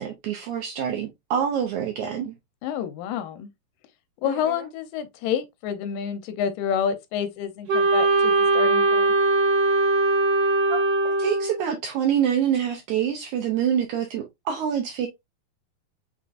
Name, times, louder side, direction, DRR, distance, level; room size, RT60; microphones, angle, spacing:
voice 1, 0.0-2.3 4.2-4.6 10.7-10.8 11.2-15.1, right 9 dB, 75° right, 1.8 m, -26 dB
voice 2, 2.6-3.5 4.2-9.2, left 8 dB, 80° left, 2.3 m, -29 dB
Wind instrument woodwind instrument, 7.7-11.7, right 3 dB, 55° right, 1.8 m, -21 dB
5.7 x 3.7 x 2.4 m
omnidirectional pair, 4.1 m